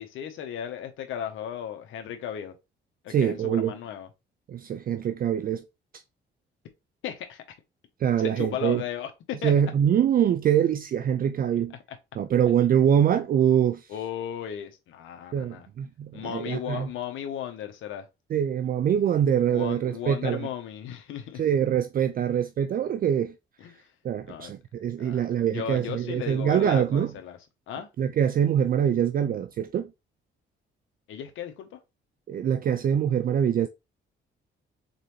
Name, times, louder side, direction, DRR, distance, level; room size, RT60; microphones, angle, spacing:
voice 1, 0.0-2.5 3.0-4.1 7.0-7.4 8.2-9.5 13.9-15.7 16.1-18.1 19.5-21.4 23.6-23.9 24.3-24.5 25.0-27.4 27.7-27.9 31.1-31.8, left 9 dB, 85° left, 1.0 m, -35 dB
voice 2, 3.1-3.8 4.5-5.7 8.0-8.8 9.4-11.7 12.2-13.9 15.3-16.9 18.3-20.4 21.4-23.3 24.0-27.1 28.0-29.9 32.3-33.7, right 9 dB, 45° right, 0.4 m, -24 dB
4.0 x 3.9 x 3.2 m
cardioid pair, 90°, 20 cm